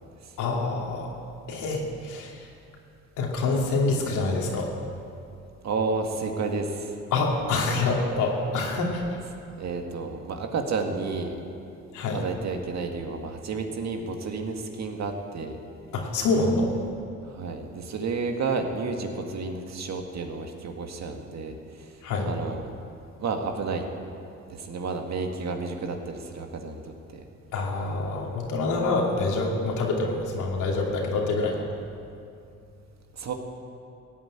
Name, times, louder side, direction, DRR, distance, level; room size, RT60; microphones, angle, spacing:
voice 1, 0.4-1.1 1.5-2.5 3.2-4.7 7.1-9.0 11.9-12.2 15.9-16.7 22.0-22.3 27.5-31.7, left 3 dB, 90° left, -1 dB, 2.7 m, -26 dB
voice 2, 5.6-6.9 9.5-11.4 12.1-15.6 17.3-21.5 22.2-22.6 23.2-23.8 24.5-26.8 33.1-33.3, right 4 dB, 60° right, 4 dB, 1.9 m, -31 dB
16.5 x 8.9 x 8.8 m, 2.6 s
cardioid pair, 90°, 30 cm